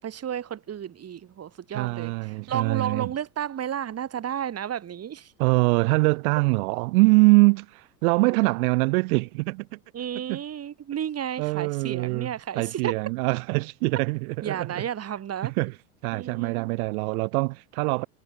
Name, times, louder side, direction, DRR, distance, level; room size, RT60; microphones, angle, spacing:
voice 1, 0.0-5.3 9.9-12.9 14.4-15.5 16.1-16.7, right 9 dB, 30° right, 5.1 m, -32 dB
voice 2, 1.7-3.1 5.4-9.8 10.3-10.4 11.4-14.8 15.4-15.7 16.0-18.1, right 26 dB, 65° right, 4.0 m, -23 dB
hypercardioid pair, 100°, 46 cm